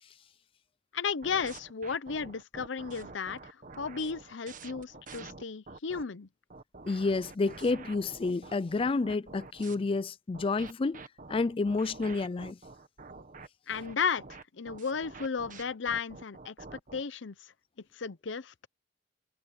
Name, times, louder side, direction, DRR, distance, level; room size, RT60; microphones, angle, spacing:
voice 1, 0.9-6.3 13.7-16.6 16.9-17.5 17.9-18.5, left 5 dB, 85° left, 0.7 m, -34 dB
sound 1, 1.2-6.0 6.5-9.8 10.3-17.0, right 3 dB, 45° right, 1.5 m, -48 dB
voice 2, 6.9-12.6, left 3 dB, 30° left, 0.4 m, -30 dB
head